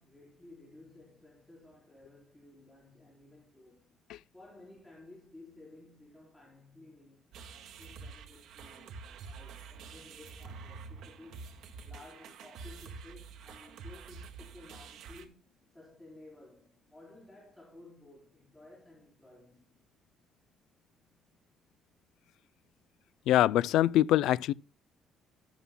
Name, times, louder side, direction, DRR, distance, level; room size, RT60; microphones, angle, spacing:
voice 1, 0.0-3.9 4.3-19.7, left 2 dB, 5° left, 3.9 m, -55 dB
sound 1, 7.3-15.2, right 4 dB, 75° right, 1.9 m, -47 dB
voice 2, 23.3-24.5, left 13 dB, 85° left, 0.4 m, -24 dB
12.5 x 12.5 x 2.2 m
cardioid pair, 155°, 0 cm